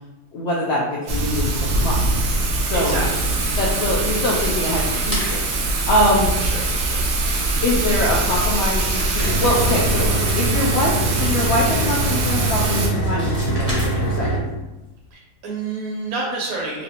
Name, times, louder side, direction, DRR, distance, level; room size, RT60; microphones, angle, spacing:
voice 1, 0.3-1.5 1.8-2.0 2.7-3.1 3.5-6.3 7.6-14.5, left 1 dB, 85° left, -4 dB, 0.5 m, -23 dB
Thunder / Rain, 1.1-12.9, right 2 dB, 90° right, 0.5 m, -22 dB
voice 2, 2.7-3.7 6.4-7.0 15.1-16.8, right 3 dB, 70° right, -2 dB, 1.0 m, -29 dB
sound 1, 4.9-5.6 7.9-8.0 8.3-9.8 12.6-14.4, right 1 dB, 25° right, 0.6 m, -32 dB
sound 2, 9.2-14.4, right 2 dB, 70° left, 1.2 m, -23 dB
3.0 x 2.6 x 2.8 m, 1.0 s
omnidirectional pair, 1.7 m